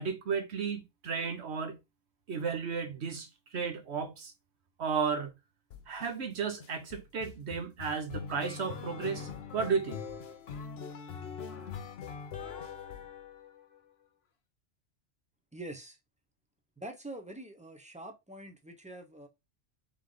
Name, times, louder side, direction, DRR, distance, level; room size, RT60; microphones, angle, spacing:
voice 1, 0.0-1.8 2.3-3.3 3.5-4.3 4.8-5.3 5.9-10.0, right 6 dB, 85° right, 1.2 m, -33 dB
sound 1, 5.7-6.1 6.6-13.8, left 6 dB, 75° left, 1.0 m, -42 dB
voice 2, 15.5-16.0 16.8-19.3, right 1 dB, 10° right, 0.7 m, -45 dB
3.6 x 3.3 x 3.8 m
omnidirectional pair, 1.1 m